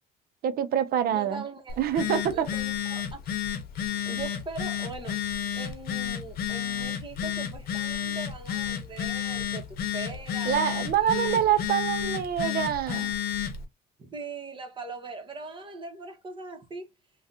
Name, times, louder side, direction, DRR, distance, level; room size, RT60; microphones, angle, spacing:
voice 1, 0.4-1.4 1.8-2.5 10.5-13.1, right 10 dB, 65° right, 0.6 m, -26 dB
voice 2, 1.1-1.8 2.3-3.2 3.7-5.2 5.5-11.5 14.0-16.9, right 3 dB, 30° right, 1.1 m, -41 dB
Telephone, 1.7-13.6, left 9 dB, 65° left, 0.8 m, -31 dB
3.4 x 2.3 x 2.7 m
cardioid pair, 110°, 17 cm